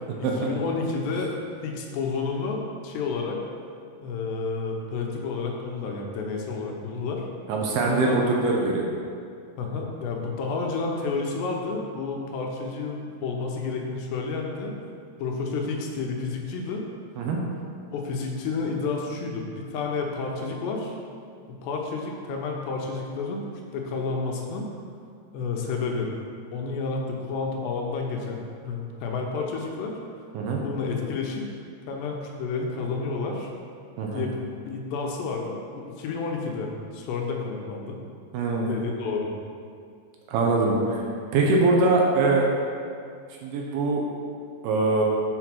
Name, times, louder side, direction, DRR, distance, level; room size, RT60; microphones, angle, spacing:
voice 1, 0.2-1.3 1.6-3.4 4.0-7.2 7.9-8.2 9.6-14.8 15.2-16.8 17.9-21.0 21.5-23.4 23.7-24.7 25.3-26.1 26.5-30.0 30.6-31.5 31.9-33.5 34.1-34.4 34.7-38.0 38.7-39.3, left 4 dB, 80° left, 0 dB, 3.1 m, -30 dB
voice 2, 7.5-8.8 17.2-17.4 30.3-30.6 34.0-34.3 38.3-38.7 40.3-41.0 41.3-42.5 43.4-44.0 44.6-45.0, right 3 dB, 75° right, -1 dB, 2.7 m, -22 dB
7.6 x 5.9 x 6.1 m, 2.3 s
omnidirectional pair, 4.9 m